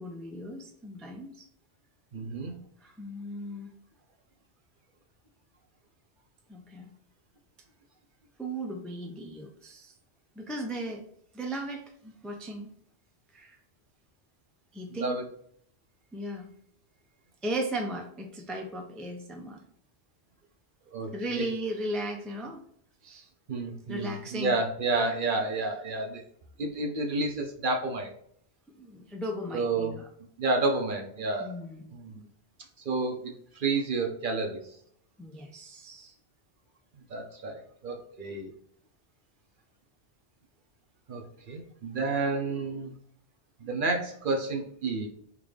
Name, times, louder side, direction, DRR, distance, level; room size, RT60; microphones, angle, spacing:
voice 1, 0.0-1.4 2.8-3.7 6.5-6.9 8.4-9.9 10.4-11.1 11.3-12.7 13.3-13.6 14.7-15.2 16.1-16.5 17.4-19.6 21.1-22.6 23.0-23.3 23.9-24.6 28.8-30.1 31.4-31.9 35.2-36.1, right 1 dB, ahead, 2 dB, 0.3 m, -36 dB
voice 2, 2.1-2.6 14.9-15.2 20.9-21.5 23.5-26.2 26.6-28.1 29.5-29.9 30.4-31.6 31.9-32.3 32.8-34.6 37.1-38.5 41.1-42.9 43.6-45.1, right 3 dB, 55° right, 3 dB, 0.8 m, -30 dB
3.6 x 2.5 x 3.2 m, 0.66 s
omnidirectional pair, 1.2 m